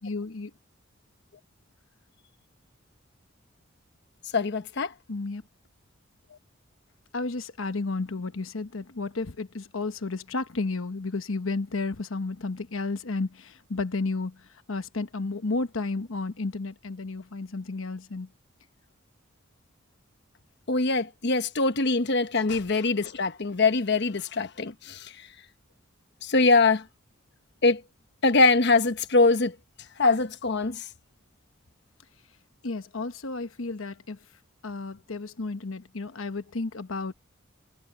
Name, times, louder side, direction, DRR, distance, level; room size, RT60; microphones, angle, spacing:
voice 1, 0.0-0.5 5.1-5.4 7.1-18.3 32.6-34.2 34.6-37.1, left 3 dB, 90° left, 1.1 m, -32 dB
voice 2, 4.3-4.9 20.7-25.1 26.2-26.8 27.6-27.8 28.2-29.5 30.0-30.8, left 3 dB, 60° left, 1.1 m, -23 dB
head